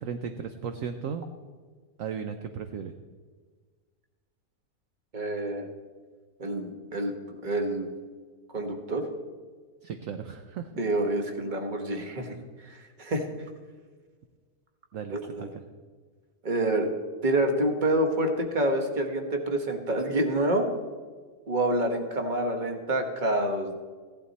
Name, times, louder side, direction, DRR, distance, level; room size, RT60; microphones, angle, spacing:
voice 1, 0.0-1.3 2.0-2.9 9.8-10.7 14.9-15.6, right 7 dB, 65° right, 7 dB, 1.0 m, -36 dB
voice 2, 5.1-5.7 6.4-7.9 8.5-9.0 10.8-12.4 13.0-13.2 15.1-15.5 16.4-16.9 17.2-20.7 21.5-23.7, right 1 dB, 30° right, 5 dB, 1.4 m, -27 dB
16.0 x 11.5 x 4.2 m, 1.5 s
omnidirectional pair, 1.7 m